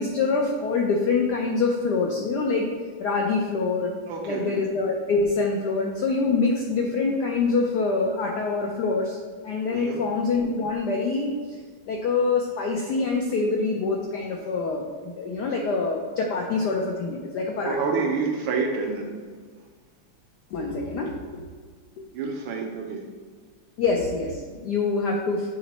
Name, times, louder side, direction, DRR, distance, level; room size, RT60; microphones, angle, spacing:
voice 1, 0.0-2.7 3.0-3.9 4.2-9.2 9.4-11.4 11.9-17.8 20.5-21.4 23.8-25.5, left 4 dB, 80° left, 0 dB, 0.9 m, -25 dB
voice 2, 4.1-4.6 9.7-10.0 17.6-19.1 22.1-23.0, right 4 dB, 70° right, 2 dB, 1.4 m, -28 dB
8.1 x 3.0 x 4.0 m, 1.5 s
omnidirectional pair, 2.4 m